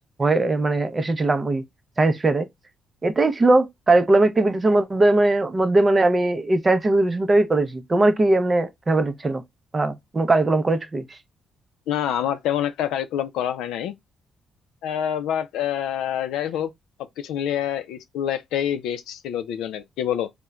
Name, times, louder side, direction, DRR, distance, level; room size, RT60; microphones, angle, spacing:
voice 1, 0.2-1.6 2.0-2.5 3.0-9.4 9.7-11.0, right 2 dB, 25° right, 0.5 m, -20 dB
voice 2, 11.9-13.9 14.8-16.7 17.2-20.3, left 10 dB, 90° left, 0.4 m, -26 dB
3.0 x 2.1 x 2.3 m
cardioid pair, 90°, 0 cm